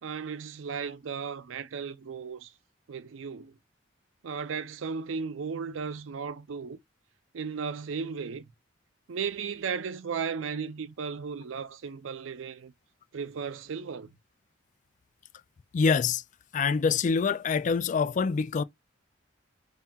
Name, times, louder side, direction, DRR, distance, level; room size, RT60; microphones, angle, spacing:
voice 1, 0.0-2.5 2.9-3.5 4.2-6.8 7.3-8.5 9.1-12.7 13.1-14.1, right 6 dB, 80° right, 0.5 m, -35 dB
voice 2, 15.7-16.2 16.5-18.6, left 5 dB, 40° left, 0.3 m, -25 dB
5.5 x 2.8 x 2.3 m
head